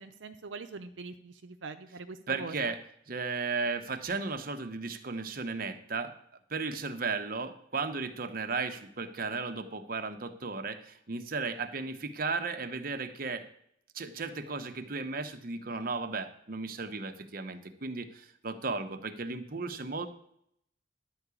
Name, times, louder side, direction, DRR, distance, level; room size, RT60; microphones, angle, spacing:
voice 1, 0.0-2.7, right 3 dB, 85° right, 7 dB, 0.7 m, -43 dB
voice 2, 2.3-2.8 3.1-6.1 6.5-13.5 13.9-20.1, right 4 dB, 50° right, 8 dB, 1.0 m, -35 dB
11.5 x 4.8 x 8.3 m, 0.71 s
head